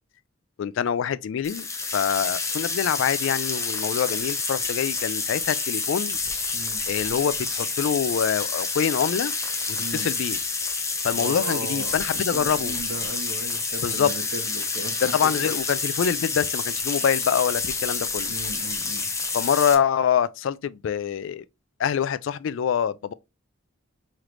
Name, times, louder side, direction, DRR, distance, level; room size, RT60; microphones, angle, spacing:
voice 1, 0.6-1.7 1.9-6.2 6.9-9.3 9.7-10.4 11.0-12.8 13.8-14.1 15.1-18.3 19.3-21.4 21.8-23.1, left 8 dB, 65° left, 0.3 m, -25 dB
sound 1, 1.4-19.7, left 4 dB, 15° left, 0.6 m, -28 dB
voice 2, 6.5-6.8 9.8-10.1 11.1-14.9 15.2-15.5 16.2-16.3 18.3-19.1, right 1 dB, 65° right, 0.9 m, -37 dB
3.8 x 3.2 x 3.1 m
head